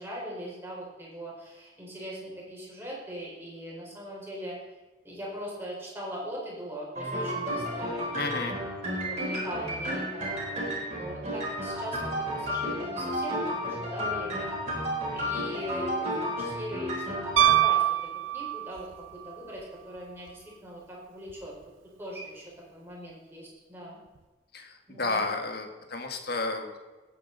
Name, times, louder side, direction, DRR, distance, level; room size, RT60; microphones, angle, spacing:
voice 1, 0.0-4.6 5.0-8.5 8.9-12.0 12.3-14.5 15.1-17.8 18.3-18.9 19.2-21.5 22.0-22.4 22.7-24.0 24.9-25.3, equal, 10° right, -5 dB, 4.4 m, -40 dB
sound 1, 6.9-17.5, equal, 35° right, 3.7 m, -32 dB
voice 2, 8.1-8.5 24.5-26.8, left 3 dB, 55° left, 4 dB, 1.5 m, -32 dB
Piano, 17.4-18.9 21.3-21.4, right 12 dB, 90° right, 0.6 m, -23 dB
18.0 x 8.6 x 4.0 m, 1.2 s
head